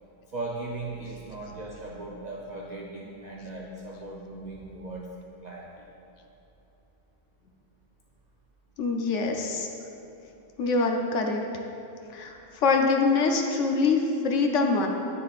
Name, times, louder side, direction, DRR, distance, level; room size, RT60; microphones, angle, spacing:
voice 1, 0.3-5.1 5.4-5.9, right 2 dB, 60° right, -2 dB, 0.4 m, -38 dB
voice 2, 8.8-9.7 10.6-11.4 12.1-12.3 12.6-14.9, left 4 dB, 65° left, 3 dB, 0.9 m, -24 dB
9.2 x 6.7 x 2.4 m, 3.0 s
omnidirectional pair, 1.5 m